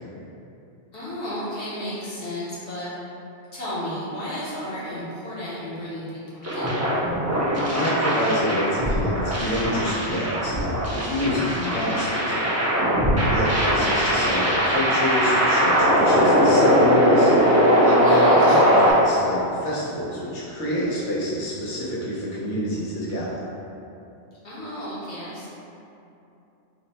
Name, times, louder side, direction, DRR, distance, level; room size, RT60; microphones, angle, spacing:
voice 1, 0.9-2.9 3.5-6.9 11.2-11.6 18.0-18.6 24.4-25.5, equal, 70° left, -9 dB, 1.2 m, -33 dB
sound 1, 6.4-18.9, equal, 25° right, 0.3 m, -20 dB
voice 2, 7.7-12.6 13.3-17.3 17.8-23.3, equal, 90° left, -8 dB, 1.2 m, -27 dB
3.3 x 2.0 x 4.0 m, 2.8 s
omnidirectional pair, 1.2 m